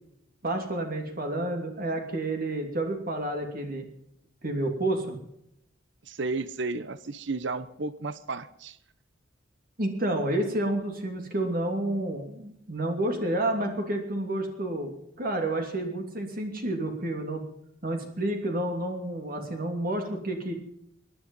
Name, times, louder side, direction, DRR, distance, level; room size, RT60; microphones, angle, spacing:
voice 1, 0.4-3.8 4.4-5.2 9.8-14.9 15.2-17.4 17.8-20.5, right 1 dB, 50° right, 4 dB, 2.8 m, -30 dB
voice 2, 6.0-8.8, right 3 dB, 65° right, 14 dB, 0.9 m, -33 dB
23.5 x 11.0 x 5.4 m, 0.78 s
head